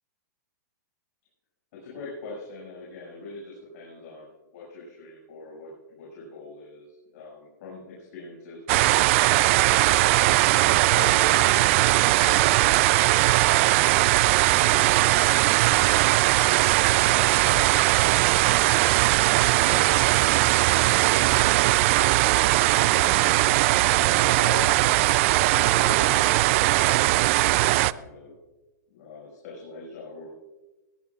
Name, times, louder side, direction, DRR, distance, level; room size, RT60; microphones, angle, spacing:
voice 1, 1.7-10.1 10.6-12.9 13.4-16.5 17.1-19.1 19.5-24.7 25.3-28.3 28.9-30.3, left 3 dB, 55° left, -4 dB, 6.2 m, -42 dB
sound 1, 8.7-27.9, right 18 dB, 45° right, 0.4 m, -20 dB
21.0 x 17.0 x 2.4 m, 1.1 s
hypercardioid pair, 140°, 10 cm